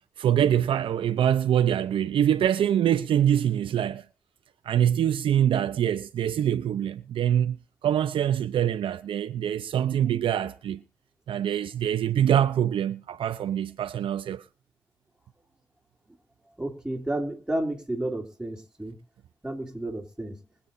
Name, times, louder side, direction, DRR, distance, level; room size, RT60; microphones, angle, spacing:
voice 1, 0.0-4.0 4.6-10.8 11.3-14.4, right 10 dB, 70° right, 0.7 m, -24 dB
voice 2, 16.6-19.0 19.4-20.4, right 1 dB, 10° right, 3.3 m, -31 dB
23.0 x 8.6 x 2.7 m
supercardioid pair, 50°, 9 cm